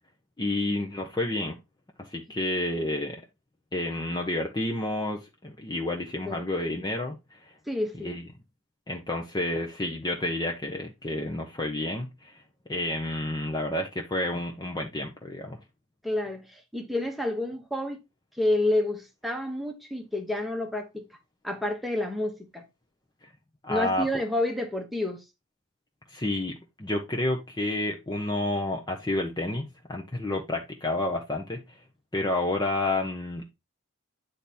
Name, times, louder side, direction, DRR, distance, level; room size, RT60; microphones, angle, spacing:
voice 1, 0.4-1.6 2.0-3.2 3.7-7.2 8.0-8.2 8.9-12.4 12.7-15.6 23.6-24.1 26.1-31.6 32.1-33.5, left 1 dB, 20° left, 0.8 m, -30 dB
voice 2, 7.7-8.2 16.0-18.0 18.4-21.0 21.4-22.7 23.7-25.2, left 1 dB, ahead, 1.1 m, -29 dB
9.0 x 3.5 x 4.2 m
head